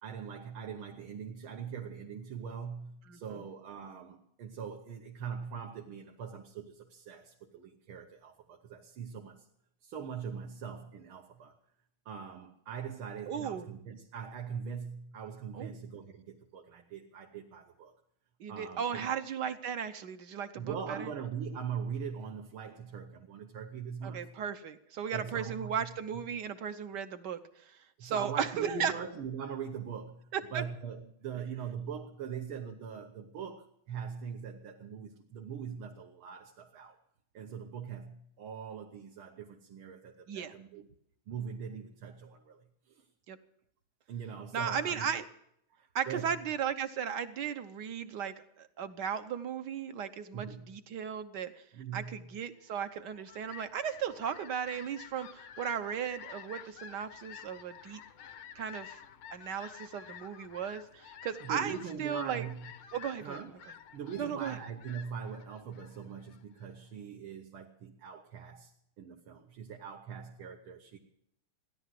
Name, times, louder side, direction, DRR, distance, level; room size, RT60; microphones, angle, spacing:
voice 1, 0.0-9.4 9.8-11.5 12.1-17.9 18.5-19.1 20.5-24.3 25.1-26.2 28.0-37.0 37.3-40.9 41.3-42.6 44.1-45.1 46.1-46.4 50.3-50.8 51.7-52.3 61.4-62.7 63.2-63.5 63.9-68.7 69.0-71.0, right 7 dB, 75° right, 2 dB, 2.0 m, -42 dB
voice 2, 13.3-13.7 15.5-15.8 18.4-21.1 24.0-27.4 27.7-28.9 30.3-30.6 40.3-40.5 43.3-43.4 44.5-45.2 45.9-51.6 51.9-58.0 58.5-59.0 59.3-62.5 62.9-63.4 64.2-64.6, right 8 dB, 60° right, 10 dB, 1.5 m, -36 dB
Fowl, 52.9-66.8, left 8 dB, 85° left, 1.8 m, -51 dB
16.0 x 11.0 x 7.6 m, 0.73 s
omnidirectional pair, 2.3 m